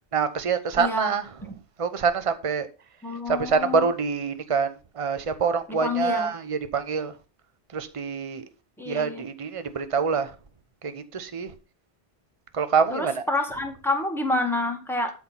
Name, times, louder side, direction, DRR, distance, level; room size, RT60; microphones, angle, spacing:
voice 1, 0.1-1.2 1.8-2.7 3.3-4.7 5.0-7.1 7.7-8.4 8.9-10.3 10.8-11.5 12.5-13.1, right 5 dB, 35° right, 0.9 m, -25 dB
voice 2, 0.8-1.2 3.0-3.9 5.7-6.3 8.8-9.2 12.9-15.1, left 2 dB, ahead, 1.9 m, -28 dB
12.5 x 4.5 x 5.6 m
omnidirectional pair, 1.1 m